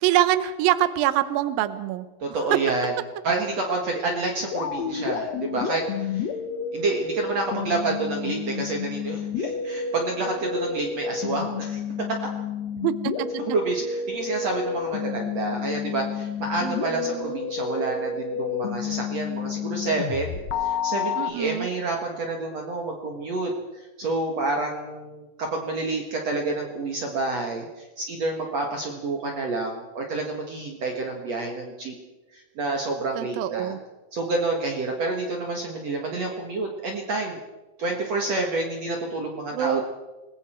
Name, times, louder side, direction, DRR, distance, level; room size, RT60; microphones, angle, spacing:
voice 1, 0.0-2.1 2.5-2.6 12.8-13.3 16.6-17.4 21.2-21.7 33.2-33.8 39.5-39.8, right 13 dB, 70° right, 12 dB, 2.4 m, -24 dB
voice 2, 2.2-2.9 3.2-6.3 6.7-11.8 13.5-31.9 32.3-33.7 34.1-37.4 37.8-39.8, right 3 dB, 50° right, 1 dB, 2.3 m, -29 dB
sound 1, 4.5-21.3, left 6 dB, 65° left, 1.7 m, -30 dB
29.0 x 20.5 x 4.5 m, 1.2 s
omnidirectional pair, 4.9 m